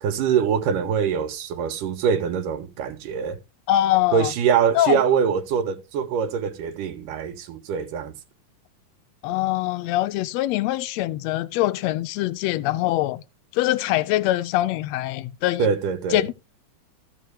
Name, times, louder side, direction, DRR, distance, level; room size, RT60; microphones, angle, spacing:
voice 1, 0.0-3.4 4.1-8.1 15.6-16.2, right 7 dB, 90° right, 2.8 m, -23 dB
voice 2, 3.7-4.3 4.7-5.0 9.2-13.2 13.5-15.7 16.1-16.3, left 15 dB, 85° left, 1.5 m, -23 dB
14.5 x 6.1 x 3.5 m
omnidirectional pair, 3.7 m